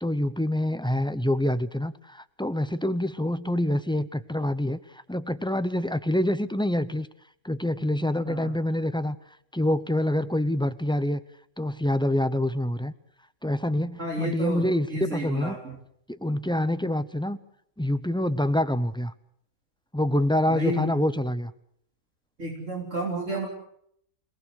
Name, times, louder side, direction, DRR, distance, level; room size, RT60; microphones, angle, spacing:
voice 1, 0.0-7.1 7.4-9.2 9.5-11.2 11.6-12.9 13.4-15.5 16.1-17.4 17.8-19.1 19.9-21.5, left 1 dB, 5° left, 12 dB, 0.3 m, -26 dB
voice 2, 14.0-15.8 20.5-21.0 22.4-23.5, right 2 dB, 55° right, -1 dB, 3.9 m, -31 dB
28.5 x 19.0 x 6.5 m, 0.69 s
omnidirectional pair, 1.6 m